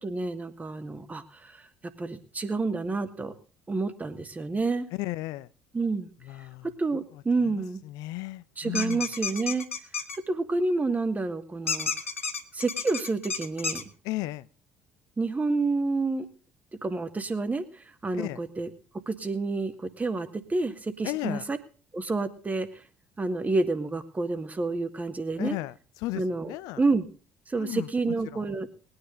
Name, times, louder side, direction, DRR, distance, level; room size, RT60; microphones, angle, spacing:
voice 1, 0.0-1.6 2.0-3.3 3.7-4.9 5.7-6.1 6.8-7.8 8.6-9.7 10.3-11.9 12.5-13.9 15.2-16.3 16.8-18.7 19.1-21.6 21.9-22.8 23.2-25.6 26.1-27.1 27.5-28.7, right 3 dB, 20° right, 1.8 m, -29 dB
voice 2, 4.9-5.5 6.2-6.7 7.5-9.0 14.0-14.5 18.1-18.4 21.0-21.5 25.4-26.8 27.6-28.4, left 18 dB, 60° left, 0.5 m, -35 dB
sound 1, 8.7-10.2 11.7-13.8, left 6 dB, 85° left, 0.9 m, -31 dB
20.0 x 9.8 x 3.9 m
figure-of-eight pair, 55°, 7 cm